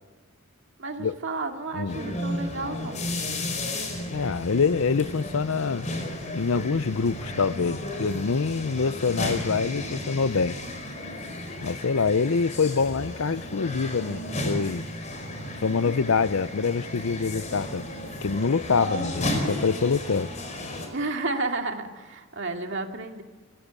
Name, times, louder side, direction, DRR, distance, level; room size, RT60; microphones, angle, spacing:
voice 1, 0.8-3.1 20.9-23.2, right 3 dB, 55° right, 2.4 m, -31 dB
sound 1, 1.9-20.9, left 1 dB, 35° left, 4.6 m, -33 dB
voice 2, 4.1-5.9 6.3-10.6 11.6-14.9 15.6-17.9 18.2-20.3, left 5 dB, 70° left, 0.6 m, -25 dB
26.5 x 17.0 x 8.4 m
head